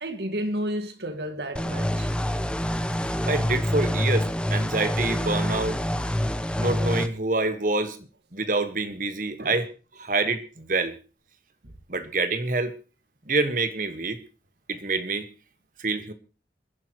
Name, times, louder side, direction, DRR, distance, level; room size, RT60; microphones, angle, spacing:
voice 1, 0.0-2.1 7.8-7.9 9.4-9.6, right 1 dB, 70° right, 1.9 m, -31 dB
sound 1, 1.6-7.1, equal, 5° left, 0.8 m, -26 dB
voice 2, 3.3-5.8 6.6-9.7 10.0-11.0 11.9-12.7 13.3-14.2 14.7-15.3 15.8-16.1, right 3 dB, 50° right, 1.5 m, -27 dB
26.5 x 11.0 x 3.1 m
head